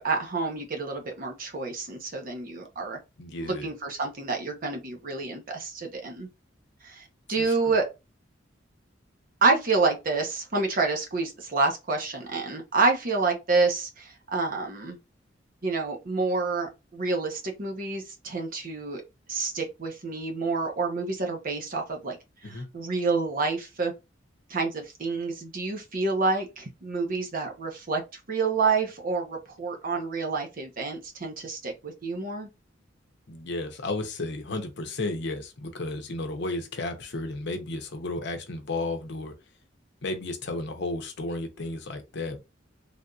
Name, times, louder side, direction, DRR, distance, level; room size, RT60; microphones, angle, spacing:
voice 1, 0.0-3.0 3.4-6.3 6.8-7.9 9.4-15.0 15.6-19.0 19.3-22.2 22.7-23.9 24.5-28.0 28.3-32.5, right 3 dB, 50° right, 0.8 m, -28 dB
voice 2, 3.2-3.7 7.4-7.7 22.4-22.7 33.3-39.3 40.0-42.4, left 2 dB, 65° left, 0.7 m, -33 dB
3.4 x 2.6 x 2.3 m
head